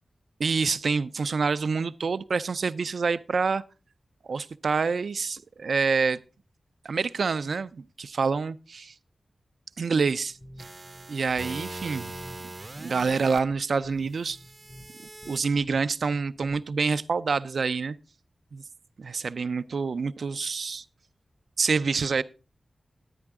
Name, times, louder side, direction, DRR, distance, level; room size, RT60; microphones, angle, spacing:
voice 1, 0.4-3.6 4.2-6.2 6.8-8.9 9.8-10.4 11.1-12.1 12.8-14.4 15.3-18.0 18.5-18.6 19.0-20.8 21.6-22.2, right 5 dB, 75° right, 0.4 m, -27 dB
sound 1, 10.1-16.9, equal, 40° left, 1.6 m, -50 dB
sound 2, 10.6-13.4 14.3-15.4, right 2 dB, 35° right, 0.6 m, -41 dB
10.0 x 9.8 x 3.5 m
cardioid pair, 55°, 0 cm